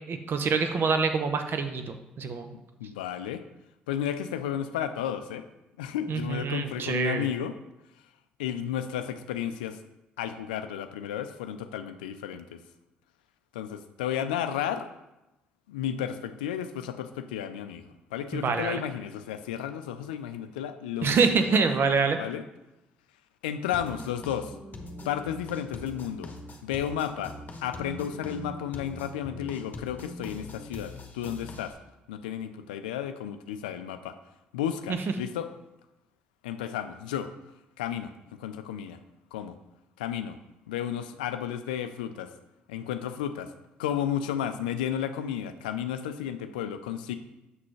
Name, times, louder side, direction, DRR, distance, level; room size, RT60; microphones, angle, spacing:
voice 1, 0.0-2.5 6.1-7.3 18.3-18.8 21.0-22.2, right 5 dB, 55° right, 7 dB, 0.8 m, -26 dB
voice 2, 2.5-3.4 3.9-5.4 5.8-7.6 8.4-9.8 10.2-12.6 13.5-14.9 15.7-21.7 22.2-22.4 23.4-24.5 25.0-26.3 26.6-27.4 27.6-31.7 32.1-34.2 34.5-35.5 36.4-37.3 37.8-39.0 39.3-39.6 40.0-40.4 40.7-42.3 42.7-43.5 43.8-47.2, left 9 dB, 90° left, 10 dB, 0.4 m, -33 dB
sound 1, 23.7-31.7, left 2 dB, 40° left, 1.1 m, -42 dB
7.4 x 6.0 x 3.2 m, 0.95 s
hypercardioid pair, 50°, 5 cm